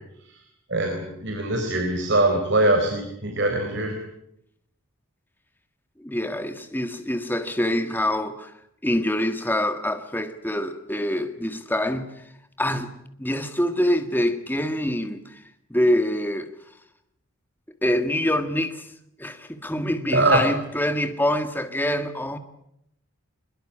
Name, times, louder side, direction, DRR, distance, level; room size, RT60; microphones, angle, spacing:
voice 1, 0.7-3.9 20.1-20.4, right 2 dB, 55° right, 4.1 m, -22 dB
voice 2, 6.0-8.5 8.8-12.1 12.6-12.9 13.2-15.4 15.7-16.5 17.8-18.9 19.2-22.4, left 1 dB, 10° left, 1.6 m, -25 dB
22.0 x 22.0 x 8.6 m
head